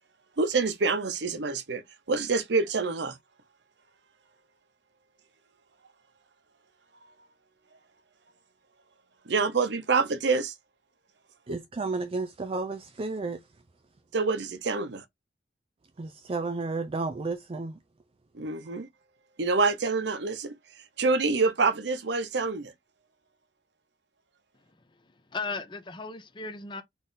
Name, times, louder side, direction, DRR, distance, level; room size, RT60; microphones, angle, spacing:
voice 1, 0.4-1.8 2.1-3.2 9.3-10.5 14.1-15.0 18.3-18.9 19.4-20.5 21.0-22.7, right 4 dB, 75° right, 0.7 m, -26 dB
voice 2, 11.5-13.5 16.0-17.8 18.6-18.7, right 3 dB, 30° right, 0.4 m, -32 dB
voice 3, 24.8-26.8, left 4 dB, 25° left, 0.6 m, -37 dB
4.0 x 2.5 x 3.7 m
head